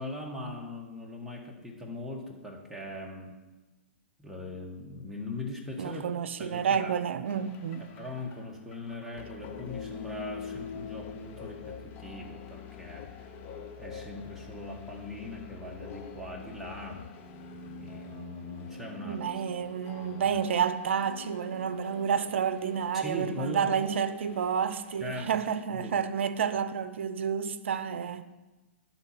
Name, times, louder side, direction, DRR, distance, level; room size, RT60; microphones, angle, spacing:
voice 1, 0.0-3.4 4.2-6.1 6.4-6.9 7.8-13.3 13.8-17.1 17.8-19.2 20.0-20.4 22.9-23.7 25.0-25.4 25.7-26.0, left 2 dB, 5° right, 1.6 m, -40 dB
voice 2, 5.8-7.9 19.0-28.2, right 7 dB, 70° right, 0.6 m, -30 dB
sound 1, 7.3-25.3, left 5 dB, 35° left, 0.9 m, -45 dB
11.0 x 4.1 x 5.9 m
hypercardioid pair, 120°, 7 cm